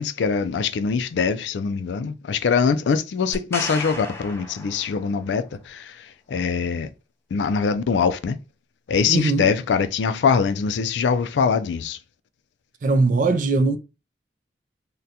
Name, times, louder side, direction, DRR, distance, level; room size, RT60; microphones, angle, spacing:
voice 1, 0.0-6.9 7.3-8.4 8.9-12.0, left 5 dB, 85° left, 0.4 m, -23 dB
sound 1, 3.3-5.3 9.0-9.1, left 1 dB, 15° left, 0.6 m, -34 dB
voice 2, 9.1-9.5 12.8-13.8, right 3 dB, 45° right, 0.4 m, -20 dB
3.6 x 2.2 x 2.7 m
head